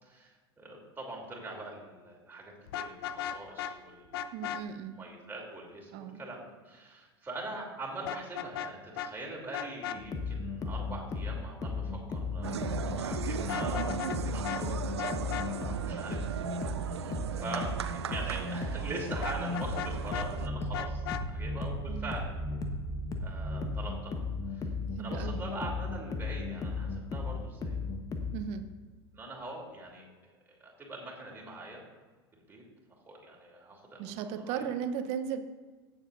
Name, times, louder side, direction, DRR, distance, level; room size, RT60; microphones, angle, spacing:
voice 1, 0.0-4.3 4.9-22.3 23.2-24.2 24.5-24.7 25.0-27.8 29.1-30.3 30.6-31.8 32.3-32.6 33.1-34.7, right 2 dB, 15° right, -2 dB, 3.2 m, -43 dB
Vehicle horn car horn honking, 2.7-3.7 4.1-4.6 8.1-8.7 9.0-9.1 9.5-10.0 13.4-14.2 14.4-14.6 15.0-15.5 19.2-20.3 20.7-21.2, left 9 dB, 65° left, 0.5 m, -36 dB
voice 2, 4.3-5.0 5.9-6.2 21.9-22.1 25.0-25.4 28.3-28.6 34.0-35.4, right 8 dB, 50° right, 9 dB, 0.9 m, -36 dB
sound 1, 9.9-28.3, left 2 dB, 25° left, 1.2 m, -35 dB
sound 2, 12.4-20.5, right 8 dB, 75° right, 0.5 m, -38 dB
16.5 x 7.3 x 2.7 m, 1.4 s
figure-of-eight pair, 85°, 14 cm